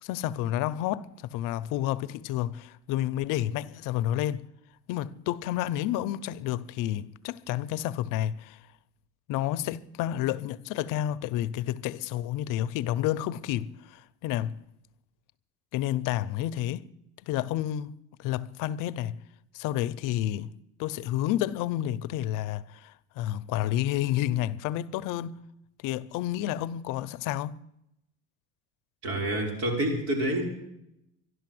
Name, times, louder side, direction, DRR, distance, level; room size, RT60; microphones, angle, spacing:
voice 1, 0.0-4.4 4.9-8.6 9.3-14.6 15.7-16.9 17.2-17.9 18.2-19.2 19.5-20.5 20.8-25.4 25.8-27.5, left 13 dB, 75° left, 0.7 m, -30 dB
voice 2, 29.0-30.5, right 1 dB, 50° right, 5.5 m, -28 dB
13.0 x 11.5 x 7.7 m
cardioid pair, 125°, 32 cm